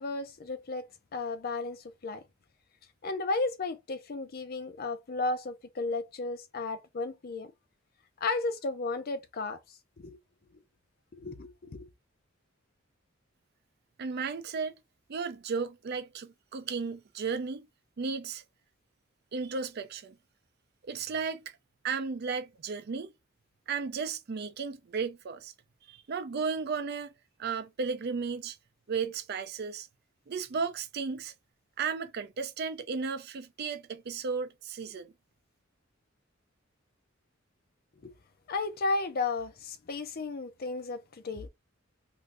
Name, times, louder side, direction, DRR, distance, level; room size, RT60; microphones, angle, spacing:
voice 1, 0.0-2.2 3.0-7.5 8.2-10.2 11.1-11.9 38.0-38.1 38.5-41.5, left 3 dB, 50° left, 0.5 m, -34 dB
voice 2, 14.0-14.7 15.1-17.7 18.0-18.4 19.3-20.1 20.8-21.5 21.8-23.1 23.7-25.5 25.9-27.1 27.4-28.6 28.9-29.9 30.3-31.3 31.8-35.1, right 5 dB, 50° right, 0.4 m, -34 dB
2.6 x 2.6 x 3.2 m
head